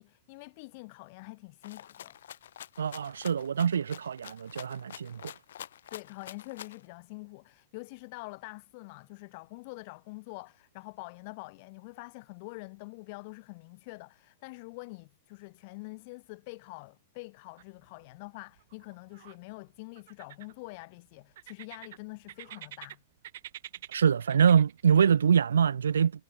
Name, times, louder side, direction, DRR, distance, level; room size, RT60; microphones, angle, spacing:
voice 1, 0.0-2.2 5.9-23.0, left 27 dB, 50° left, 6.7 m, -45 dB
Rattle (instrument), 1.6-6.9, left 10 dB, 70° left, 2.5 m, -47 dB
voice 2, 2.8-5.3 23.9-26.1, right 7 dB, 75° right, 0.3 m, -24 dB
sound 1, 17.6-18.1 18.4-19.4 19.9-20.8 21.3-22.9 23.2-25.0, right 13 dB, 60° right, 2.6 m, -47 dB
hypercardioid pair, 105°, 0 cm